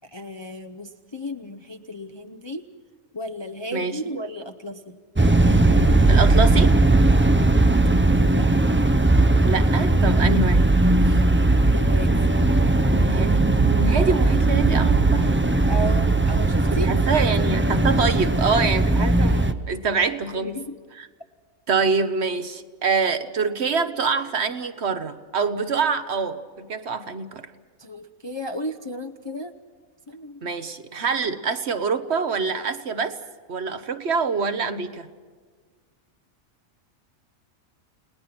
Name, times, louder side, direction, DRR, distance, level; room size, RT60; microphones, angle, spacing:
voice 1, 0.1-2.7 3.1-5.0 8.2-8.5 11.0-11.2 11.7-12.3 15.7-17.3 20.3-20.8 27.8-29.5 30.1-30.5, left 1 dB, 25° left, 4 dB, 0.6 m, -34 dB
sound 1, 5.2-19.5, right 2 dB, 15° right, 0.5 m, -18 dB
voice 2, 6.1-6.8 9.4-10.6 13.0-13.4 13.7-15.5 16.7-20.6 20.9-21.1 21.7-27.5 30.4-33.1 33.5-35.1, right 5 dB, 55° right, 10 dB, 1.2 m, -25 dB
30.0 x 19.0 x 6.0 m, 1.5 s
omnidirectional pair, 1.4 m